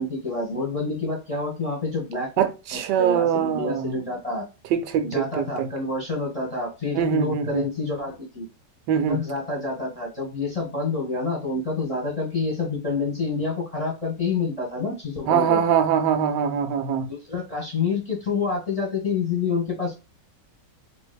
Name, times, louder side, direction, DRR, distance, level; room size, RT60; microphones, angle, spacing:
voice 1, 0.0-2.3 3.0-4.4 5.0-8.5 9.1-15.6 17.1-20.0, left 4 dB, 25° left, 0.9 m, -28 dB
voice 2, 2.4-4.0 4.7-5.7 6.9-7.7 8.9-9.2 15.3-17.1, right 8 dB, 75° right, 1.2 m, -23 dB
4.0 x 2.6 x 2.2 m
omnidirectional pair, 1.9 m